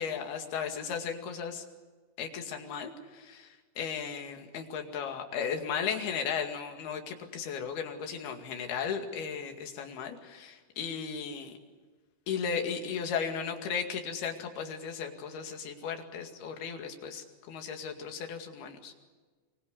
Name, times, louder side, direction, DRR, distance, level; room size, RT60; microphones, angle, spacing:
voice 1, 0.0-1.6 2.2-11.5 12.3-18.9, left 6 dB, 55° left, 4 dB, 3.8 m, -36 dB
25.5 x 23.5 x 8.4 m, 1.4 s
omnidirectional pair, 5.9 m